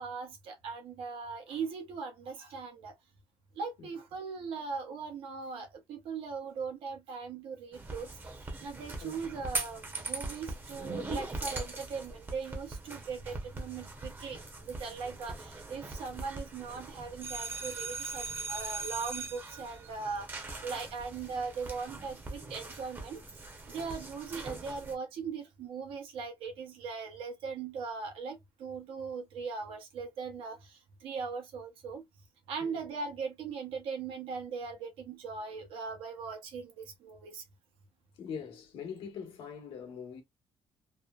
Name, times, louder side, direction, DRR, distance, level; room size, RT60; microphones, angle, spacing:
voice 1, 0.0-2.9 3.5-8.3 8.6-23.2 23.7-32.0 32.5-37.4, right 5 dB, 85° right, 0.9 m, -39 dB
sound 1, 7.7-24.9, right 3 dB, 20° right, 0.6 m, -41 dB
voice 2, 38.2-40.2, left 6 dB, 85° left, 1.0 m, -42 dB
2.9 x 2.0 x 2.2 m
cardioid pair, 135°, 9 cm